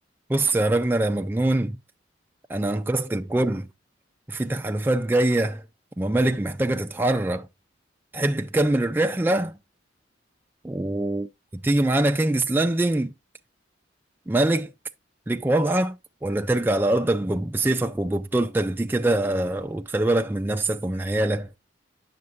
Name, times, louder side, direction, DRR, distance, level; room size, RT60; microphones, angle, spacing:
voice 1, 0.3-1.8 2.5-3.6 4.3-5.6 6.0-7.5 8.1-9.5 10.6-13.1 14.3-14.7 15.3-16.0 16.2-21.5, right 1 dB, 10° right, 0.3 m, -23 dB
9.5 x 6.6 x 2.5 m
head